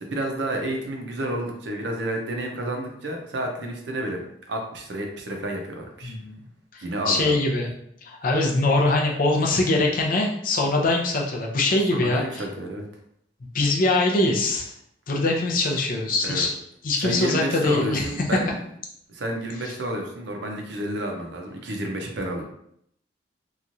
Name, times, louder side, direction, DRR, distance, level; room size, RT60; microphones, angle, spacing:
voice 1, 0.0-4.2 4.5-6.1 6.8-7.3 11.9-12.9 16.2-16.5 17.0-18.5 19.1-22.4, right 1 dB, 65° right, 2 dB, 0.6 m, -30 dB
voice 2, 6.0-6.4 6.7-7.7 8.0-12.4 13.5-14.7 15.1-16.6 16.8-18.1 19.6-19.7, left 2 dB, 45° left, 0 dB, 0.5 m, -23 dB
3.0 x 2.3 x 2.6 m, 0.71 s
head